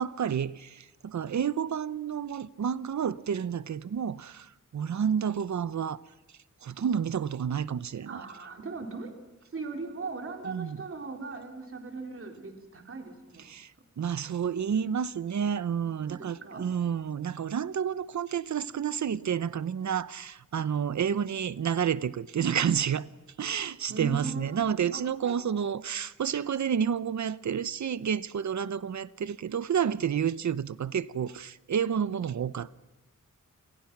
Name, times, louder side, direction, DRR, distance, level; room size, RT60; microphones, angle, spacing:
voice 1, 0.0-6.0 6.6-8.2 10.5-10.8 13.5-23.1 23.4-32.7, right 8 dB, 65° right, 0.9 m, -30 dB
voice 2, 8.1-13.4 16.0-16.7 23.9-25.4, right 4 dB, 45° right, 3.8 m, -39 dB
29.0 x 27.0 x 6.1 m
wide cardioid pair, 175°, 31 cm